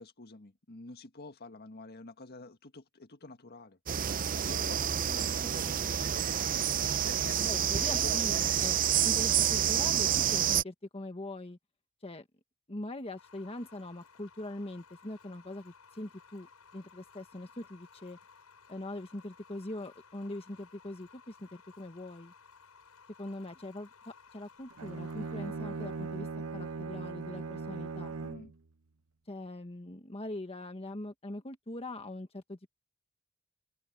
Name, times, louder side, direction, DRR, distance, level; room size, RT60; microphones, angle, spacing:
voice 1, 0.0-3.8 4.4-6.0 6.7-8.2 28.2-28.5, left 3 dB, 45° left, 1.7 m, -48 dB
sound 1, 3.9-10.6, right 9 dB, 40° right, 0.6 m, -28 dB
voice 2, 7.4-11.6 12.0-12.3 12.7-16.5 16.7-18.2 18.7-22.3 23.2-26.3 26.5-28.1 29.3-32.7, left 1 dB, 25° left, 1.4 m, -42 dB
sound 2, 13.2-28.1, left 5 dB, 90° left, 6.1 m, -59 dB
Bowed string instrument, 24.7-28.6, right 4 dB, 75° right, 0.9 m, -39 dB
open air
head